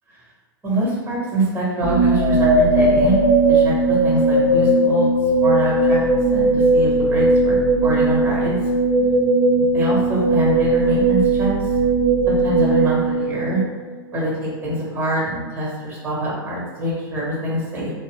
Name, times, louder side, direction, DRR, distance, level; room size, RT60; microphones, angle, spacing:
voice 1, 0.6-3.2 3.5-5.1 5.4-8.6 9.7-11.7 12.3-13.6 14.1-17.9, equal, 15° right, -5 dB, 1.1 m, -24 dB
sound 1, 1.8-13.9, right 2 dB, 35° right, 0.5 m, -18 dB
2.4 x 2.0 x 3.1 m, 1.4 s
hypercardioid pair, 100°, 13 cm